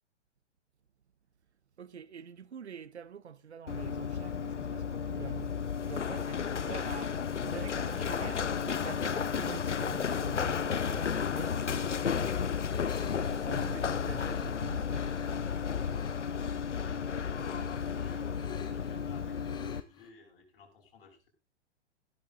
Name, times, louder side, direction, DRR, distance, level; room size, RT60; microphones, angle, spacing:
voice 1, 1.8-15.1, right 8 dB, 70° right, 0.8 m, -46 dB
Run, 3.7-19.8, left 7 dB, 80° left, 0.6 m, -33 dB
sound 1, 12.6-15.3 15.9-16.4 16.7-20.1, left 7 dB, 10° left, 1.4 m, -51 dB
voice 2, 13.9-14.2 16.3-21.3, left 5 dB, 55° left, 5.9 m, -53 dB
15.5 x 12.5 x 2.6 m
figure-of-eight pair, 110°, 35 cm